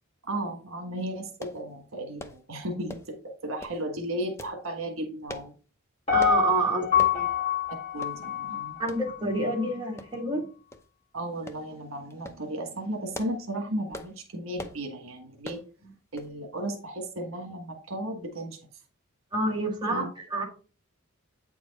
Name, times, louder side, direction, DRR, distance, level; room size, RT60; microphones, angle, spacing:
voice 1, 0.2-5.5 6.7-6.8 7.9-8.8 11.1-15.6 16.1-18.6 19.9-20.1, right 1 dB, 65° right, 3 dB, 1.5 m, -35 dB
sound 1, 1.4-1.6 2.2-2.4 2.9-3.2 3.6-3.8 4.4-4.6 5.3-5.5 6.2-6.4 7.0-7.2 7.6-7.7 8.0-8.2 8.9-9.0 10.0-10.4 10.7-10.9 11.5-11.6 12.1-12.4 12.9-13.4 13.9-14.1 14.6-14.8 15.4-15.7 16.2-16.3 16.6-16.7, left 1 dB, 15° left, 0.7 m, -41 dB
Piano, 6.1-9.2 9.6-9.7, left 10 dB, 30° left, 3.0 m, -26 dB
voice 2, 6.1-7.3 8.8-10.5 15.8-15.9 19.3-20.4, right 2 dB, 20° right, -1 dB, 1.9 m, -28 dB
8.7 x 4.6 x 4.1 m, 0.37 s
head